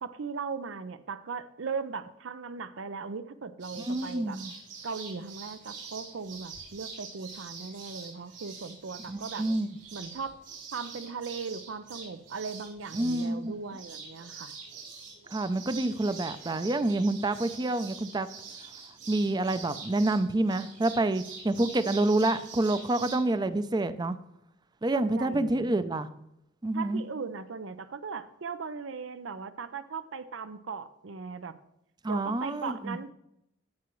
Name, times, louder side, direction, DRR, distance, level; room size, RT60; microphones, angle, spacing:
voice 1, 0.0-4.4 4.8-9.5 9.9-10.4 10.7-14.5 24.9-25.8 26.7-31.5 32.1-33.1, right 5 dB, 85° right, 13 dB, 0.6 m, -38 dB
sound 1, 3.6-23.2, right 5 dB, 65° right, 4.0 m, -45 dB
voice 2, 3.8-4.5 9.1-9.7 13.0-13.6 15.3-18.3 19.1-24.2 24.8-26.1 26.6-27.0 32.0-33.0, right 2 dB, 20° right, 12 dB, 0.5 m, -28 dB
16.0 x 5.9 x 3.1 m, 0.81 s
head